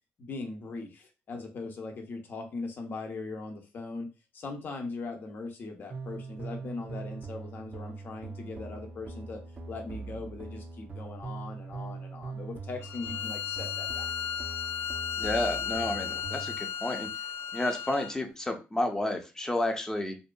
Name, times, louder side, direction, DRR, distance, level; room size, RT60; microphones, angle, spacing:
voice 1, 0.2-4.1 4.3-9.4 9.7-14.1, left 3 dB, 50° left, 3 dB, 0.8 m, -40 dB
sound 1, 5.9-16.6, right 4 dB, 40° right, 0.5 m, -42 dB
Bowed string instrument, 12.8-18.2, left 8 dB, 80° left, 0.3 m, -35 dB
voice 2, 15.2-17.1 17.5-20.2, left 1 dB, 15° left, 4 dB, 0.6 m, -31 dB
2.7 x 2.4 x 2.2 m, 0.29 s
cardioid pair, 85°, 4 cm